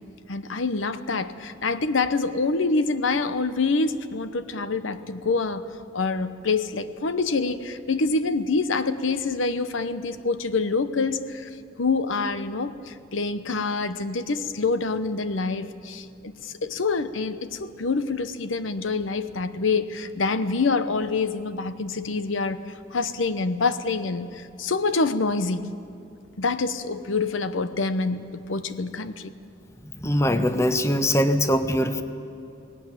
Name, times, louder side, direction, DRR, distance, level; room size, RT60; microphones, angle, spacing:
voice 1, 0.3-5.6 5.9-11.5 11.8-22.6 22.9-25.7 26.4-29.3 31.5-31.6, left 3 dB, 80° left, 12 dB, 0.9 m, -26 dB
voice 2, 30.0-32.0, equal, 15° left, 9 dB, 0.9 m, -22 dB
19.0 x 17.5 x 9.1 m, 2.7 s
head